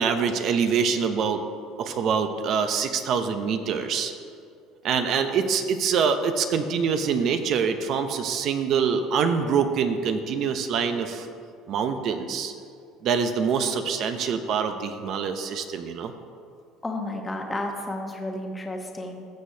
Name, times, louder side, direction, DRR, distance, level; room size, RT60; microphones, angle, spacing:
voice 1, 0.0-1.4 1.8-4.1 4.8-11.3 11.7-12.5 13.0-16.1, right 6 dB, 55° right, 7 dB, 0.7 m, -25 dB
voice 2, 16.8-19.3, left 1 dB, 15° left, 1 dB, 1.1 m, -32 dB
16.0 x 6.3 x 2.8 m, 2.3 s
cardioid pair, 120°, 0 cm